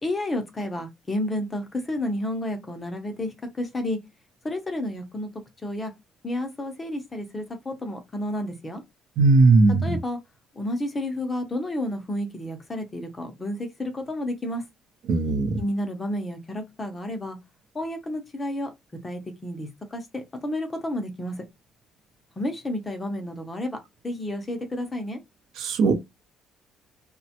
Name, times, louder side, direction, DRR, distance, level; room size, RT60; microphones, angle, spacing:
voice 1, 0.0-4.0 4.4-5.3 5.6-5.9 6.2-8.8 9.8-10.2 10.6-14.6 15.6-17.4 17.7-18.7 19.0-21.4 22.4-23.8 24.0-25.2, left 1 dB, 15° left, 0.5 m, -31 dB
voice 2, 9.2-10.0 15.1-15.6 25.6-25.9, right 3 dB, 65° right, 0.6 m, -18 dB
3.1 x 2.1 x 2.8 m
cardioid pair, 165°, 0 cm